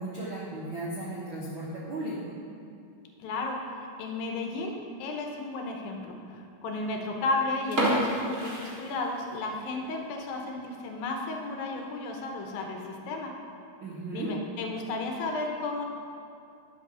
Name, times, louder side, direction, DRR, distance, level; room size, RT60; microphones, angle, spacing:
voice 1, 0.0-2.2 13.8-14.3, right 2 dB, 80° right, -6 dB, 1.1 m, -35 dB
voice 2, 3.2-13.3 14.1-15.9, left 2 dB, 75° left, 2 dB, 2.6 m, -33 dB
sound 1, 7.6-9.5 9.9-10.0 10.5-10.7 11.1-11.2 11.5-11.6 12.3-12.6, right 1 dB, 45° right, 1.0 m, -30 dB
11.0 x 5.5 x 6.2 m, 2.5 s
omnidirectional pair, 4.3 m